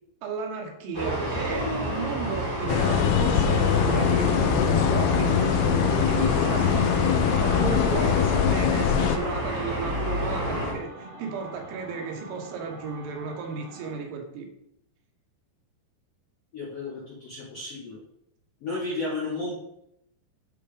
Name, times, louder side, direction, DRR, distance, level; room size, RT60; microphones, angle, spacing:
voice 1, 0.2-6.7 7.4-14.5, right 5 dB, 85° right, 2 dB, 3.7 m, -34 dB
sound 1, 0.9-10.7, equal, 25° right, 0.5 m, -29 dB
sound 2, 2.6-14.1, right 1 dB, 50° right, 2.1 m, -44 dB
sound 3, 2.7-9.2, left 8 dB, 90° left, 2.3 m, -23 dB
voice 2, 16.5-18.0 18.6-19.6, left 2 dB, 65° left, -5 dB, 1.5 m, -33 dB
10.5 x 3.6 x 5.0 m, 0.78 s
omnidirectional pair, 5.2 m